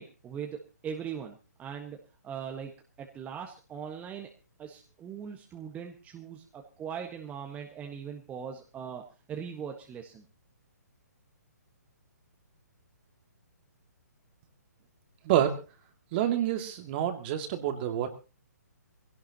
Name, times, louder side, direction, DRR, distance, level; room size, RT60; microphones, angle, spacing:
voice 1, 0.0-2.0 2.2-4.3 4.6-9.0 9.3-10.2, right 7 dB, 15° right, 2 dB, 1.5 m, -40 dB
voice 2, 15.2-15.6 16.1-18.1, right 11 dB, 35° right, 7 dB, 2.3 m, -28 dB
20.5 x 17.0 x 2.9 m, 0.33 s
hypercardioid pair, 140°, 9 cm